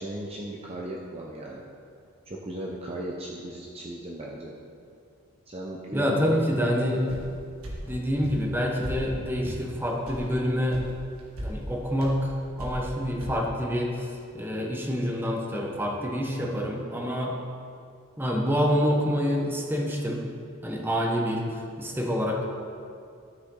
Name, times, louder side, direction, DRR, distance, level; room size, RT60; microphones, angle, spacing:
voice 1, 0.0-1.6 2.3-4.5 5.5-7.1, right 1 dB, 30° right, -2 dB, 0.8 m, -37 dB
voice 2, 5.9-7.0 7.8-10.8 11.4-12.3 12.6-17.4 18.2-20.2 20.6-22.4, equal, 10° right, -1 dB, 1.1 m, -27 dB
sound 1, 7.1-7.3 7.6-7.8 8.2-8.4 8.8-9.0 9.4-9.6 10.1-10.2 10.7-10.9 11.2-11.5 12.0-12.1 12.6-12.8 13.2-13.3, equal, 85° right, 1.9 m, -36 dB
13.0 x 6.7 x 3.9 m, 2.4 s
head